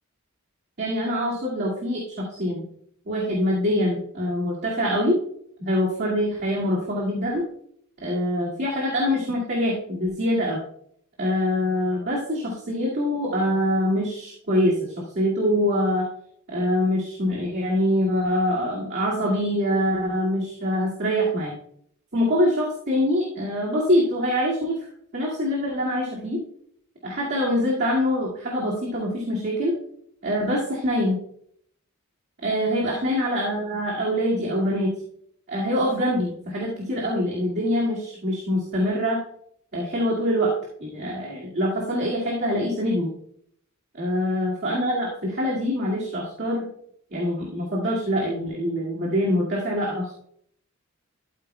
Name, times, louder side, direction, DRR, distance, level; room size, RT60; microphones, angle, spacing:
voice 1, 0.8-2.6 3.1-5.2 5.6-7.4 8.0-10.6 11.2-16.1 16.5-21.5 22.1-24.9 25.1-26.4 27.0-29.8 30.2-31.2 32.4-34.9 35.5-39.2 39.7-40.5 40.8-43.1 43.9-46.7 47.1-50.2, equal, 50° right, -5 dB, 2.1 m, -24 dB
13.0 x 8.5 x 2.2 m, 0.68 s
head